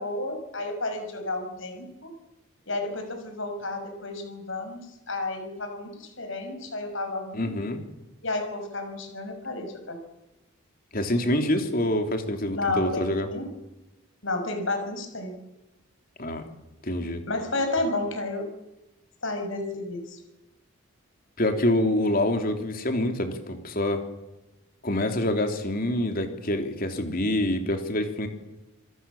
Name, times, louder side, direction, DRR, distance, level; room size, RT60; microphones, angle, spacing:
voice 1, 0.0-2.1 2.7-4.8 5.1-7.5 8.2-10.0 12.5-13.0 13.3-13.5 14.2-15.3 17.3-18.5 19.2-20.2, left 2 dB, 60° left, 6 dB, 6.1 m, -31 dB
voice 2, 7.3-7.8 10.9-13.3 16.2-16.4 16.8-17.2 21.4-24.0 24.8-28.3, left 1 dB, 40° left, 6 dB, 3.5 m, -26 dB
27.0 x 21.5 x 7.4 m, 1.0 s
head